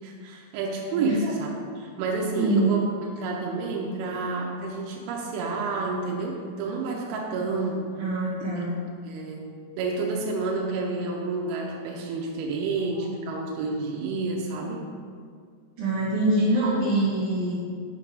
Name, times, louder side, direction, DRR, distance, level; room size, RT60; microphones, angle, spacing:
voice 1, 0.0-1.5 1.8-2.9 3.2-7.9 8.5-8.6 9.0-14.9, right 3 dB, 90° right, -1 dB, 3.0 m, -29 dB
voice 2, 2.4-2.8 8.0-8.7 12.9-13.0 15.8-17.5, right 2 dB, 55° right, -13 dB, 1.6 m, -24 dB
7.6 x 3.3 x 5.0 m, 2.1 s
omnidirectional pair, 5.2 m